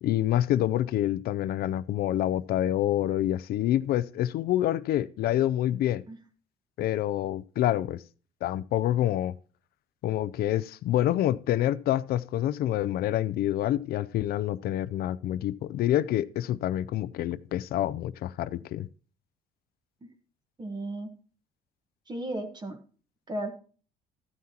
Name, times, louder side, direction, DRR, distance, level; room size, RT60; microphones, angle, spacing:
voice 1, 0.0-6.0 6.8-8.0 8.4-9.3 10.0-18.9, left 12 dB, 65° left, 0.5 m, -27 dB
voice 2, 20.6-21.1 22.1-22.8 23.3-23.5, right 1 dB, 25° right, 1.4 m, -35 dB
14.0 x 9.5 x 2.9 m
cardioid pair, 110°, 17 cm